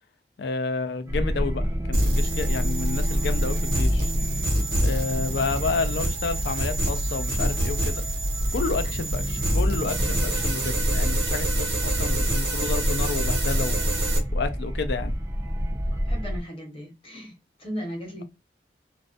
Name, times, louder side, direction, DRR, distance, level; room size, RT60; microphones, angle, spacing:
voice 1, 0.4-4.1 4.8-8.0 8.5-13.8 14.3-15.1, left 4 dB, 70° left, 0.4 m, -30 dB
sound 1, 1.1-16.4, equal, 15° right, 0.3 m, -28 dB
sound 2, 1.9-14.2, right 1 dB, 75° right, 0.9 m, -27 dB
voice 2, 15.9-17.3 17.6-18.2, equal, 30° left, 0.9 m, -36 dB
2.4 x 2.1 x 2.4 m
head